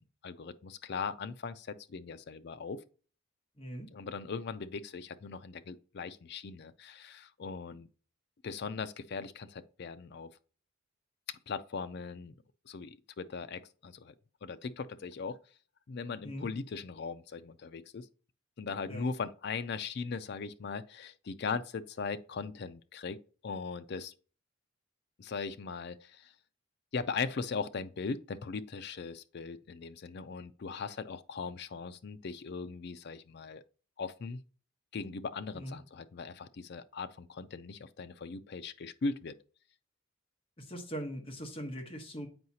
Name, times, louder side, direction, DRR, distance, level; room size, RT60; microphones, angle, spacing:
voice 1, 0.0-2.8 3.9-7.9 8.4-10.3 11.5-12.3 12.7-14.1 14.4-15.4 15.9-18.1 18.6-24.1 25.2-26.3 26.9-33.6 34.0-34.4 34.9-39.4, left 4 dB, 50° left, 0.4 m, -39 dB
voice 2, 3.6-3.9 16.2-16.5 18.9-19.1 35.5-35.8 40.6-42.3, equal, 25° left, 1.1 m, -41 dB
7.8 x 4.8 x 2.8 m
head